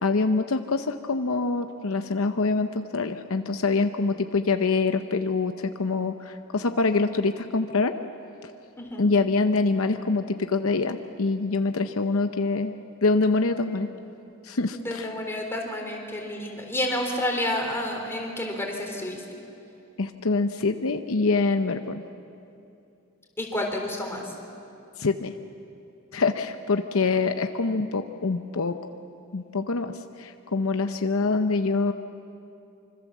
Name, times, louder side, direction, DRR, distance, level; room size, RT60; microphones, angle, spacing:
voice 1, 0.0-8.0 9.0-12.7 13.0-13.9 14.4-15.1 20.0-22.0 25.0-25.3 26.1-28.8 29.3-31.9, left 3 dB, 65° left, 7 dB, 0.8 m, -25 dB
voice 2, 14.7-19.2 23.4-24.3, left 1 dB, 10° left, 1 dB, 3.7 m, -30 dB
25.5 x 25.5 x 7.4 m, 2.7 s
head